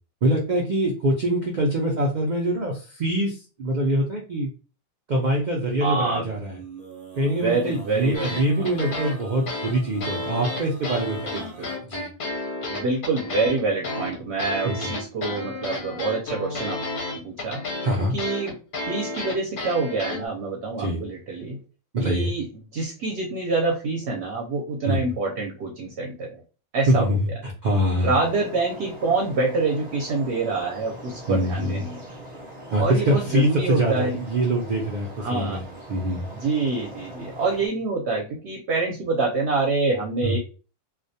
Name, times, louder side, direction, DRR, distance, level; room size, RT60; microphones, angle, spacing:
voice 1, 0.2-4.5 5.1-6.6 7.1-12.1 14.6-14.9 17.8-18.1 20.8-21.0 21.9-22.3 24.9-25.0 26.9-28.1 31.3-31.8 32.7-36.3 40.2-40.4, right 1 dB, 85° right, 0 dB, 0.4 m, -24 dB
voice 2, 5.8-6.3 7.2-8.7 11.3-11.7 12.7-16.8 17.1-17.6 18.0-18.6 18.9-21.6 22.0-22.5 22.7-26.4 26.7-27.2 28.0-32.0 32.8-34.2 35.2-35.6 36.3-40.4, right 3 dB, 60° right, 0 dB, 0.8 m, -26 dB
Male singing, 6.4-11.8, right 4 dB, 10° left, 0.3 m, -44 dB
sound 1, 8.1-20.3, left 2 dB, 55° left, 0.6 m, -31 dB
sound 2, 28.2-37.7, right 1 dB, 30° right, 0.8 m, -41 dB
2.3 x 2.2 x 2.6 m, 0.36 s
omnidirectional pair, 1.4 m